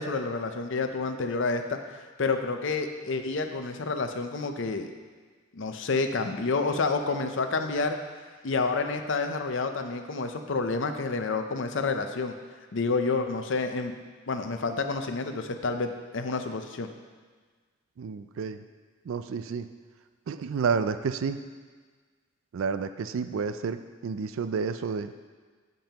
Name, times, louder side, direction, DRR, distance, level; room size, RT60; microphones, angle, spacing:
voice 1, 0.0-4.9 5.5-8.0 8.4-12.3 12.7-13.9 14.3-16.9, left 3 dB, 60° left, 6 dB, 0.6 m, -29 dB
voice 2, 18.0-18.6 19.1-19.7 20.3-21.4 22.5-25.1, right 5 dB, 75° right, 11 dB, 0.4 m, -30 dB
14.5 x 5.3 x 2.9 m, 1.5 s
head